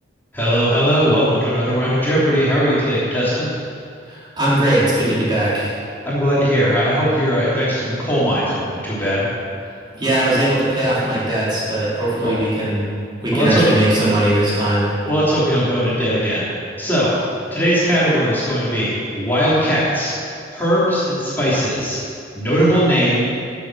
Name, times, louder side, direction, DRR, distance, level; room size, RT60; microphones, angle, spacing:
voice 1, 0.3-3.5 6.0-9.3 12.2-12.3 13.3-13.6 15.0-16.5 16.8-17.1 17.5-20.1 20.5-22.0 22.3-23.2, equal, 10° left, -9 dB, 3.2 m, -19 dB
voice 2, 4.1-5.7 9.9-12.9 13.2-14.9, right 1 dB, 25° right, -9 dB, 3.6 m, -19 dB
15.5 x 7.3 x 6.2 m, 2.3 s
head